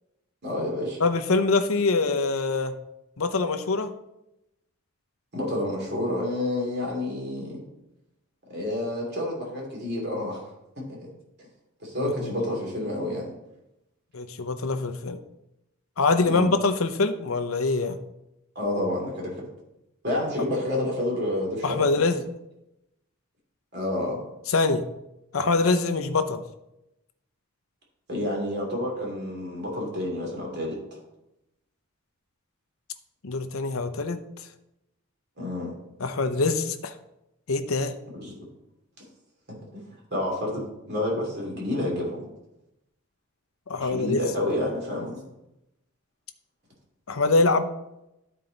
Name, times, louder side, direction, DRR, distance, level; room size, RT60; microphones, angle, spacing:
voice 1, 0.4-1.0 5.3-7.6 8.5-10.4 10.8-11.1 11.8-13.3 16.2-16.5 18.5-19.3 20.0-22.0 23.7-24.2 28.1-30.8 35.4-35.7 38.1-38.4 39.7-39.8 40.1-42.3 43.8-45.2, left 1 dB, 50° right, -1 dB, 2.7 m, -29 dB
voice 2, 1.0-2.7 3.2-3.9 12.0-12.3 14.1-15.2 16.0-18.0 21.6-22.2 24.5-24.8 25.3-26.4 33.2-34.5 36.0-36.9 37.5-37.9 43.7-44.2 47.1-47.7, left 3 dB, 80° left, 9 dB, 0.7 m, -24 dB
12.5 x 4.5 x 3.9 m, 0.88 s
head